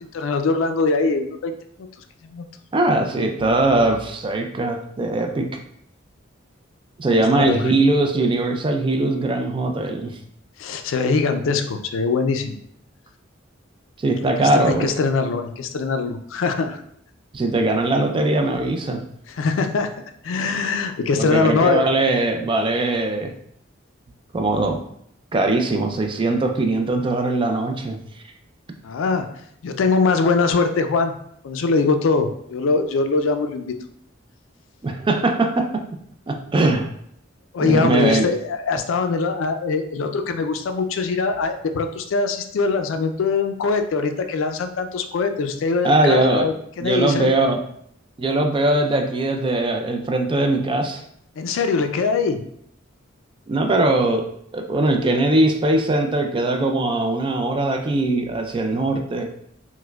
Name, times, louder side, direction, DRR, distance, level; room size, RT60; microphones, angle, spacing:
voice 1, 0.0-1.5 1.8-1.9 2.2-2.5 7.1-7.7 10.6-12.6 14.4-16.8 19.3-19.9 20.2-21.8 28.8-29.3 29.6-31.1 31.4-33.7 37.5-47.6 51.4-52.4, left 4 dB, 75° left, 7 dB, 0.4 m, -22 dB
voice 2, 2.7-5.5 7.0-10.2 14.0-14.9 17.3-19.0 21.2-23.3 24.3-24.8 25.3-28.0 34.8-35.8 36.3-36.9 37.6-38.3 45.8-46.5 46.8-47.6 48.2-51.0 53.5-54.3 54.5-59.3, right 2 dB, 25° right, 4 dB, 0.3 m, -20 dB
4.5 x 2.1 x 2.2 m, 0.70 s
head